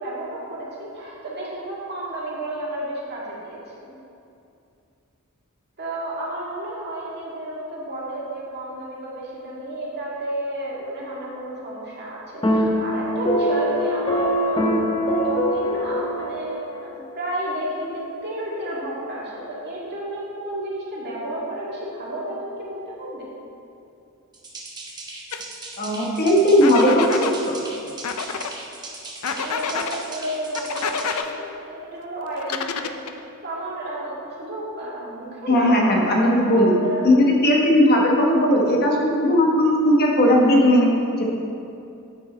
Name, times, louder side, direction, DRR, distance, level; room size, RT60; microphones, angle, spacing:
voice 1, 0.0-3.9 5.8-14.7 15.1-23.2 29.2-33.0 33.4-35.8 36.3-37.0 37.4-37.5, right 1 dB, 50° right, -6 dB, 2.1 m, -32 dB
sound 1, 12.4-16.9, equal, 20° left, 0.6 m, -23 dB
sound 2, 24.3-31.2, right 3 dB, 20° right, 1.0 m, -38 dB
sound 3, 25.3-25.4 26.6-27.3 28.0-28.5 29.2-30.0 30.5-31.3 32.4-33.2, left 6 dB, 70° left, 0.5 m, -28 dB
voice 2, 25.8-27.2 35.5-36.7 37.0-40.9 41.2-41.3, left 1 dB, 45° left, -1 dB, 1.1 m, -17 dB
9.1 x 6.2 x 4.3 m, 2.6 s
head